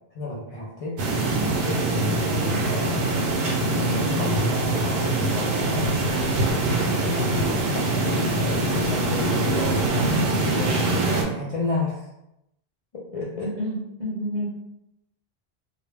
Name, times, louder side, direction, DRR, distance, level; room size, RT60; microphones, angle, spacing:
voice 1, 0.1-3.1 3.9-6.0 7.0-8.5 8.9-12.1 12.9-13.5, left 2 dB, 55° left, -5 dB, 0.4 m, -32 dB
sound 1, 1.0-11.2, right 2 dB, 80° right, 0.8 m, -23 dB
voice 2, 13.3-14.5, equal, 50° right, -4 dB, 0.8 m, -30 dB
2.1 x 2.1 x 3.2 m, 0.85 s
omnidirectional pair, 1.0 m